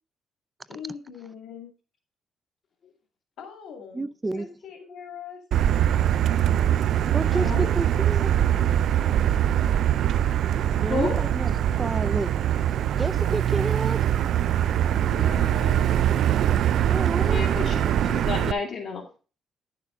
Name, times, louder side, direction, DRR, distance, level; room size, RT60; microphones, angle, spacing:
voice 1, 0.7-1.7 3.4-4.1 4.4-5.4 7.3-7.8 15.0-16.0 17.4-17.7, left 7 dB, 75° left, 2.1 m, -41 dB
voice 2, 3.9-4.5 7.1-7.5 7.8-8.3 10.8-11.5 11.8-12.4 13.0-14.0 16.9-17.4, right 2 dB, 20° right, 0.5 m, -30 dB
Motor vehicle (road), 5.5-18.5, right 10 dB, 75° right, 0.4 m, -22 dB
voice 3, 17.2-19.0, left 4 dB, 45° left, 2.4 m, -31 dB
10.5 x 6.7 x 3.7 m
cardioid pair, 90°, 0 cm